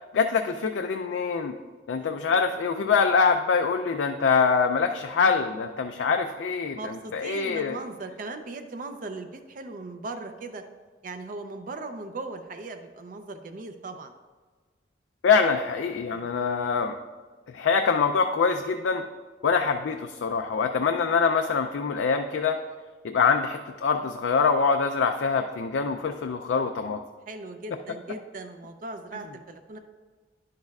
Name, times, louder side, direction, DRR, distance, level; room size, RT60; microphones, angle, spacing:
voice 1, 0.1-1.5 1.9-7.8 15.2-17.0 17.5-19.0 19.4-22.6 23.0-27.0, left 5 dB, 80° left, 5 dB, 0.4 m, -24 dB
voice 2, 6.7-10.6 11.0-14.1 16.1-16.2 27.3-29.8, right 3 dB, 50° right, 7 dB, 0.4 m, -38 dB
10.5 x 6.5 x 2.3 m, 1.4 s
head